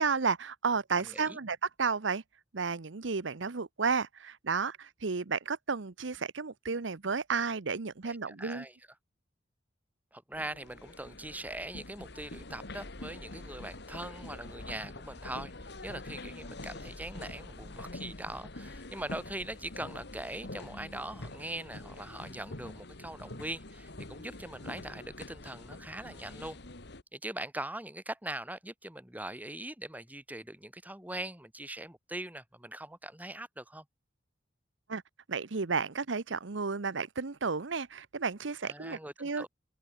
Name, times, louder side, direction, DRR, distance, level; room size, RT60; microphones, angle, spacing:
voice 1, 0.0-2.2 2.5-8.6 34.9-35.0 35.3-39.5, right 5 dB, 75° right, 0.9 m, -32 dB
voice 2, 1.0-1.4 8.0-8.8 10.1-26.6 27.1-33.8 38.6-39.5, right 1 dB, 10° right, 7.9 m, -41 dB
sound 1, 10.3-27.0, left 2 dB, 65° left, 2.4 m, -45 dB
open air
head